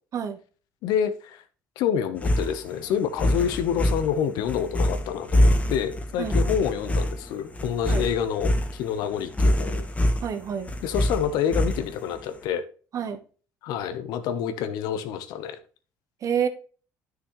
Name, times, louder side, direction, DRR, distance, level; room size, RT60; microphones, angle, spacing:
voice 1, 0.8-1.4 1.8-9.8 10.8-12.6 13.6-15.6, left 8 dB, 80° left, 1.1 m, -27 dB
sound 1, 2.2-12.2, left 1 dB, 20° left, 1.5 m, -24 dB
voice 2, 10.2-10.7 12.9-13.2 16.2-16.5, right 8 dB, 50° right, 1.3 m, -28 dB
9.9 x 6.3 x 3.1 m
cardioid pair, 95°, 7 cm